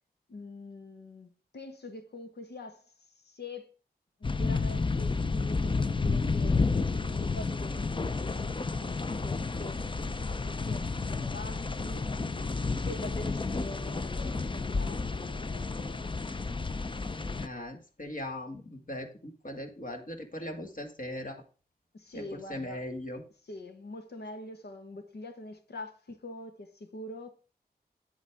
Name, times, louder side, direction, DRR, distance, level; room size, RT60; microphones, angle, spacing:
voice 1, 0.3-2.9 3.2-3.7 4.2-6.7 7.1-8.7 9.2-9.8 10.2-12.1 12.8-16.1 21.9-22.9 23.4-27.3, left 2 dB, 80° left, 1.5 m, -44 dB
sound 1, 4.2-17.5, left 4 dB, 30° left, 0.6 m, -31 dB
voice 2, 17.4-19.1 19.4-21.4 22.1-23.2, left 1 dB, 55° left, 2.1 m, -39 dB
9.7 x 8.2 x 3.6 m
wide cardioid pair, 70°, 17 cm